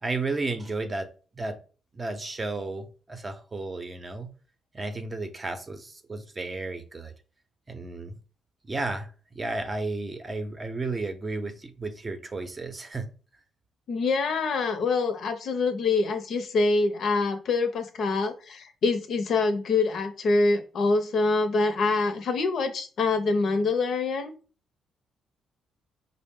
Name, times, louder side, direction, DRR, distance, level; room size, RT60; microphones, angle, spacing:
voice 1, 0.0-1.6 1.9-4.3 4.7-7.1 7.7-8.2 8.6-13.1, right 3 dB, 30° right, 0.6 m, -33 dB
voice 2, 13.9-24.3, left 3 dB, 65° left, 0.6 m, -25 dB
4.6 x 2.0 x 3.6 m
cardioid pair, 90°, 0 cm